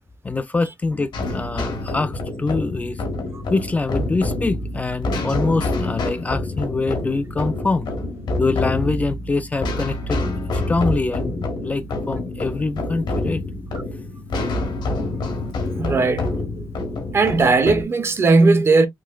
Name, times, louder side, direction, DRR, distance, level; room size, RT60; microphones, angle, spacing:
voice 1, 0.2-3.0 3.5-7.9 8.4-10.2 10.5-13.4, left 3 dB, 20° left, 0.3 m, -24 dB
sound 1, 1.1-17.8, left 2 dB, 75° left, 1.4 m, -27 dB
voice 2, 15.8-16.3 17.1-18.9, right 3 dB, 35° right, 0.6 m, -17 dB
3.7 x 3.0 x 2.3 m
wide cardioid pair, 155°, 8 cm